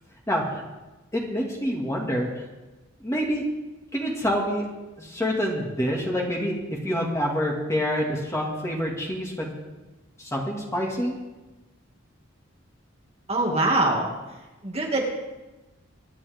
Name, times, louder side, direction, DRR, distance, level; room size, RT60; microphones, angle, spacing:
voice 1, 0.3-0.6 1.1-2.3 3.0-3.4 3.9-4.6 5.0-6.6 6.8-9.5 10.2-11.1, equal, 15° left, -2 dB, 2.2 m, -27 dB
voice 2, 13.3-14.1 14.6-15.1, right 2 dB, 30° right, -1 dB, 2.2 m, -23 dB
24.0 x 10.5 x 3.6 m, 1.1 s
head